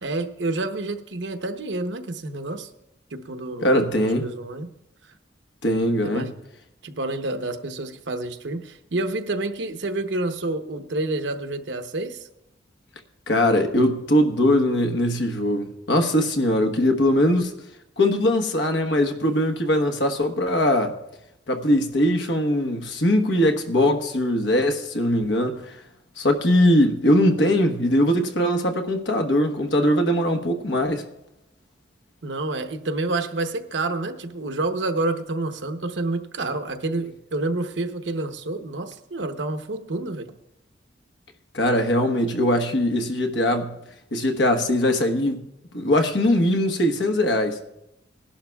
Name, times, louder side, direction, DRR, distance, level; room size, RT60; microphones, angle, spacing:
voice 1, 0.0-2.7 3.1-4.7 6.0-6.3 6.8-12.3 32.2-40.4, right 2 dB, 70° right, 0.8 m, -28 dB
voice 2, 3.6-4.3 5.6-6.3 13.3-17.5 18.0-21.0 21.5-25.8 26.2-31.0 41.5-43.8 44.1-45.4 45.7-47.6, left 1 dB, 75° left, 1.2 m, -21 dB
20.5 x 11.5 x 2.3 m
head